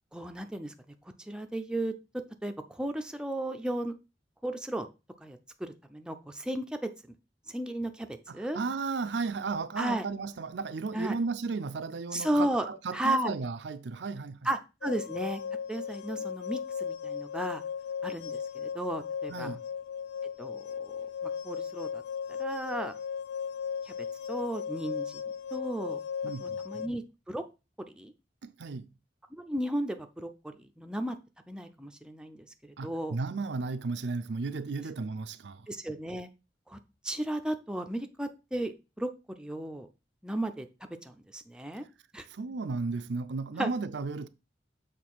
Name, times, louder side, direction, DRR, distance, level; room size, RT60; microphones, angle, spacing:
voice 1, 0.1-0.9 1.3-1.9 2.4-3.9 4.4-4.9 5.2-6.9 7.5-8.6 9.8-10.0 10.9-11.1 12.1-12.7 12.9-13.3 14.4-15.4 15.7-17.6 18.0-19.6 20.4-22.0 22.4-22.9 23.9-24.0 24.3-25.2 25.5-26.0 26.4-27.4 27.9-28.1 29.4-31.2 31.5-33.2 35.7-36.3 36.7-36.8 37.0-39.1 39.4-39.9 40.2-40.7 41.0-41.8 42.1-42.3 43.6-43.7, right 1 dB, 5° right, 0.6 m, -34 dB
voice 2, 8.3-14.4 19.3-19.6 26.2-26.6 28.4-28.9 32.8-35.7 42.3-44.3, right 4 dB, 70° right, 0.5 m, -34 dB
sound 1, 14.8-26.9, left 7 dB, 65° left, 0.4 m, -36 dB
6.6 x 3.3 x 6.1 m
head